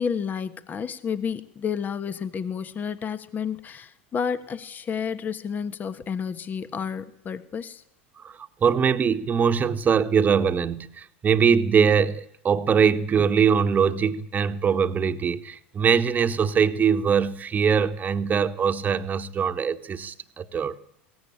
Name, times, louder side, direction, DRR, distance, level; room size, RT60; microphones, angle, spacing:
voice 1, 0.0-7.8, left 7 dB, 25° left, 1.4 m, -30 dB
voice 2, 8.2-20.7, right 6 dB, 25° right, 1.5 m, -22 dB
22.0 x 18.0 x 8.9 m
hypercardioid pair, 85°, 6 cm